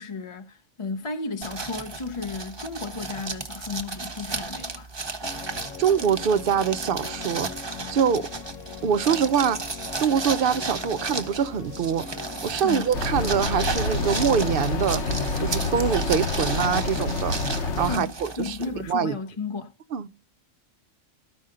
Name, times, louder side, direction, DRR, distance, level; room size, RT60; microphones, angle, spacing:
voice 1, 0.0-4.9 12.6-12.9 17.9-19.7, left 4 dB, 35° left, 0.5 m, -33 dB
sound 1, 1.4-18.9, right 3 dB, 25° right, 0.8 m, -34 dB
sound 2, 5.2-15.9, left 8 dB, 80° left, 1.0 m, -40 dB
voice 2, 5.8-8.3 8.8-9.6 10.0-15.0 15.4-18.6 18.9-19.1 19.9-20.1, right 7 dB, 55° right, 0.6 m, -24 dB
sound 3, 12.9-18.0, left 2 dB, 65° left, 1.3 m, -28 dB
13.5 x 5.5 x 3.7 m
omnidirectional pair, 1.3 m